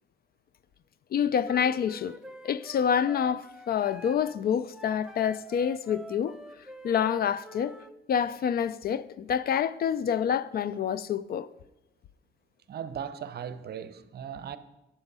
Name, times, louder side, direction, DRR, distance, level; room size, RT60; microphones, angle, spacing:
voice 1, 1.1-2.2 2.4-6.4 6.8-7.8 8.1-11.5, left 8 dB, 50° left, 0.4 m, -27 dB
Wind instrument woodwind instrument, 1.4-7.9, right 1 dB, 5° right, 0.6 m, -47 dB
voice 2, 12.7-14.6, right 8 dB, 55° right, 0.7 m, -38 dB
8.9 x 7.0 x 5.4 m
cardioid pair, 90°, 20 cm